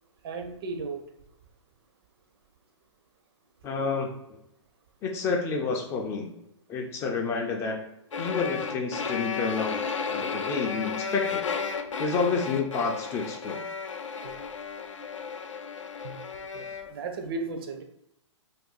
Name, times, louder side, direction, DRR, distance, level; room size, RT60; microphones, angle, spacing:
voice 1, 0.2-1.0 14.2-14.3 16.0-16.1 16.5-16.6 16.9-17.8, right 3 dB, 50° right, 6 dB, 0.5 m, -34 dB
voice 2, 3.6-4.1 5.0-6.3 6.7-7.8 8.2-9.8 10.1-11.4 12.0-13.6, left 4 dB, 15° left, 1 dB, 0.3 m, -29 dB
sound 1, 8.1-16.9, left 5 dB, 90° left, 0.4 m, -33 dB
2.6 x 2.2 x 3.8 m, 0.85 s
hypercardioid pair, 130°, 16 cm